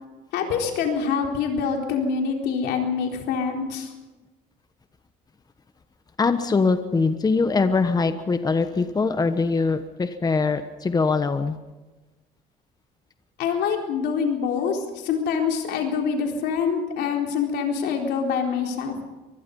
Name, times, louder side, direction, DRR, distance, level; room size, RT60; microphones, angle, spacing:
voice 1, 0.3-3.9 13.4-19.0, left 6 dB, 85° left, 2 dB, 4.0 m, -25 dB
voice 2, 6.2-11.6, left 4 dB, 25° left, 9 dB, 1.2 m, -22 dB
24.0 x 20.0 x 5.4 m, 1.2 s
cardioid pair, 110°, 17 cm